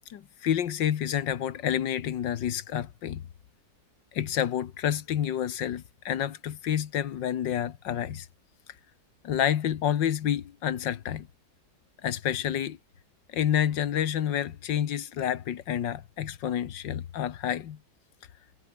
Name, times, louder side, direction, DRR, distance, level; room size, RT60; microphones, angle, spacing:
voice 1, 0.1-3.2 4.1-8.3 9.2-11.3 12.0-12.8 13.3-17.8, left 10 dB, 85° left, 1.8 m, -29 dB
omnidirectional pair, 1.9 m